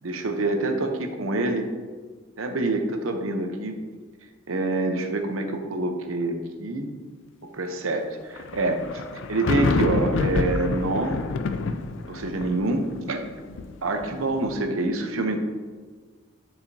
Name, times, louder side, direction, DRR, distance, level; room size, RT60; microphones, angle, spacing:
voice 1, 0.0-1.6 2.4-3.8 4.5-6.9 7.4-8.8 9.3-11.2 12.1-13.3 13.8-15.4, right 2 dB, 75° right, 5 dB, 0.8 m, -26 dB
sound 1, 8.4-14.6, left 3 dB, 60° left, 0.4 m, -28 dB
9.8 x 4.9 x 2.7 m, 1.4 s
head